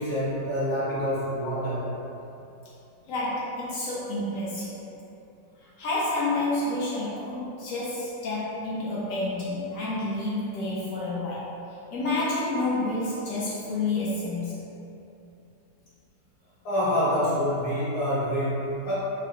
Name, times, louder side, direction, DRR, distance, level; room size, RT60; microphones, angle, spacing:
voice 1, 0.0-1.9 16.6-18.9, equal, 60° left, -10 dB, 1.1 m, -26 dB
voice 2, 3.1-4.8 5.6-11.5 11.9-14.6, left 2 dB, 80° left, -7 dB, 0.7 m, -29 dB
3.9 x 2.1 x 2.7 m, 2.8 s
omnidirectional pair, 2.0 m